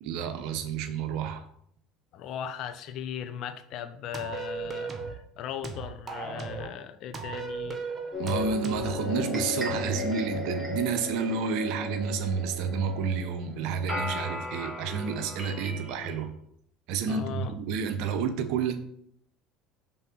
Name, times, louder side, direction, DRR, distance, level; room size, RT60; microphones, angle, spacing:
voice 1, 0.0-1.4 8.2-16.3 16.9-18.8, right 6 dB, 70° right, 9 dB, 0.8 m, -30 dB
voice 2, 2.1-7.8 17.1-17.6, left 9 dB, 60° left, 10 dB, 0.7 m, -38 dB
sound 1, 4.1-5.2 5.6-6.7 7.1-8.9, right 4 dB, 30° right, 1.3 m, -36 dB
sound 2, 8.1-16.2, left 3 dB, 10° right, 2.8 m, -35 dB
5.7 x 3.9 x 5.8 m, 0.69 s
supercardioid pair, 85°, 0 cm